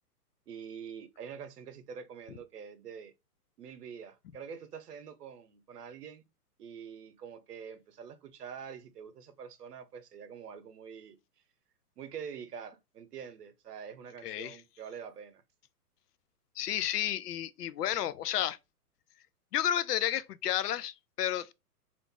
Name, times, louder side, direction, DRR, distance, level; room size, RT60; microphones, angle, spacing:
voice 1, 0.5-3.1 3.6-6.2 6.6-11.2 12.0-15.4, right 7 dB, 80° right, 0.8 m, -45 dB
voice 2, 14.2-14.6 16.6-18.6 19.5-21.5, left 11 dB, 80° left, 0.5 m, -31 dB
2.5 x 2.4 x 3.7 m
hypercardioid pair, 135°, 46 cm